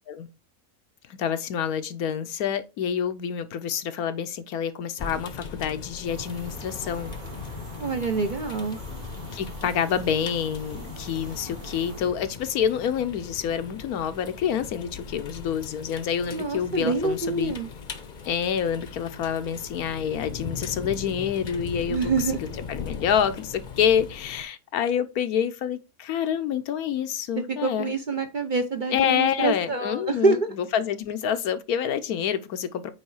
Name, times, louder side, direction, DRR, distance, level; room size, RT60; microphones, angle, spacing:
voice 1, 1.2-7.1 9.3-17.6 18.2-22.1 22.7-27.9 28.9-32.9, left 8 dB, 85° left, 1.2 m, -27 dB
sound 1, 5.0-24.4, left 6 dB, 40° left, 0.8 m, -39 dB
sound 2, 6.0-12.0, right 5 dB, 80° right, 1.9 m, -44 dB
voice 2, 7.8-8.8 16.3-17.7 21.9-22.4 27.5-30.4, right 3 dB, 45° right, 0.7 m, -26 dB
8.5 x 3.2 x 4.7 m
omnidirectional pair, 1.5 m